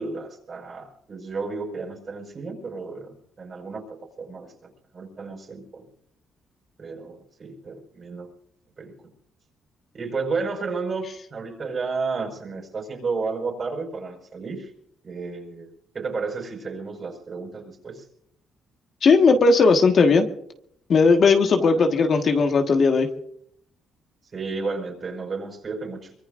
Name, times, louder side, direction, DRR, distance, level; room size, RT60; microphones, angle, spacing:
voice 1, 0.0-5.8 6.8-8.3 8.8-8.9 9.9-14.7 15.0-15.7 15.9-18.1 21.6-21.8 24.3-26.1, right 4 dB, 45° right, 3 dB, 5.2 m, -32 dB
voice 2, 19.0-20.3 20.9-23.1, left 4 dB, 55° left, 4 dB, 1.5 m, -17 dB
24.0 x 22.5 x 2.6 m, 0.70 s
cardioid pair, 90°, 0 cm